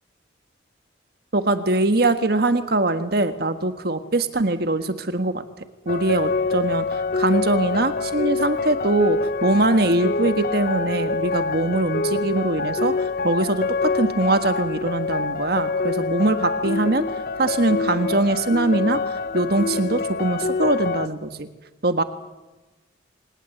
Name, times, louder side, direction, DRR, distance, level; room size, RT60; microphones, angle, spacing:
voice 1, 1.3-5.4 5.8-6.8 7.1-17.0 17.4-21.5 21.8-22.0, right 2 dB, 55° right, 9 dB, 1.5 m, -22 dB
sound 1, 5.9-21.1, left 4 dB, 50° left, 0.7 m, -26 dB
25.5 x 19.0 x 8.0 m, 1.2 s
head